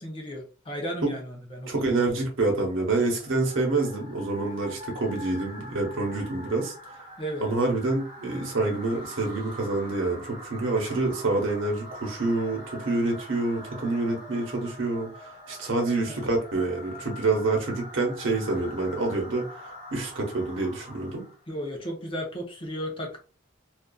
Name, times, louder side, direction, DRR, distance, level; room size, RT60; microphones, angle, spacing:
voice 1, 0.0-1.9 7.2-7.5 16.1-16.3 21.5-23.2, equal, 25° left, 1 dB, 0.6 m, -34 dB
voice 2, 1.7-6.9 7.4-21.2, right 2 dB, 85° right, 1 dB, 0.9 m, -27 dB
sound 1, 2.5-21.4, equal, 25° right, 0.8 m, -44 dB
2.5 x 2.4 x 2.3 m, 0.36 s
head